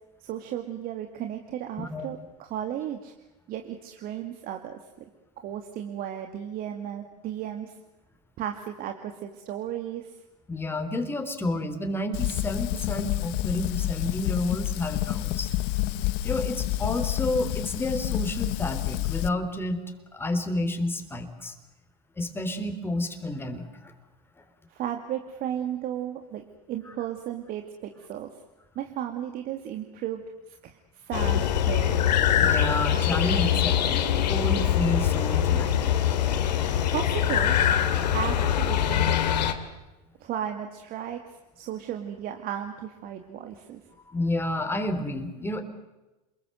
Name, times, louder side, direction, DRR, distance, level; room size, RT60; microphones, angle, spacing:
voice 1, 0.2-3.1 3.5-4.8 5.4-7.8 8.4-10.2 24.7-28.3 28.8-30.2 30.5-32.1 36.9-37.6 38.1-39.2 40.2-41.2 41.6-43.8, right 10 dB, 45° right, 5 dB, 2.5 m, -34 dB
voice 2, 10.5-15.5 16.2-19.8 20.1-21.5 22.2-23.9 32.4-34.0 34.3-35.8 44.1-45.6, left 1 dB, 10° left, 6 dB, 3.7 m, -30 dB
Fire, 12.1-19.3, left 16 dB, 55° left, 1.1 m, -29 dB
sound 1, 31.1-39.5, left 10 dB, 80° left, 2.8 m, -23 dB
28.5 x 21.5 x 8.0 m, 1.1 s
hypercardioid pair, 105°, 21 cm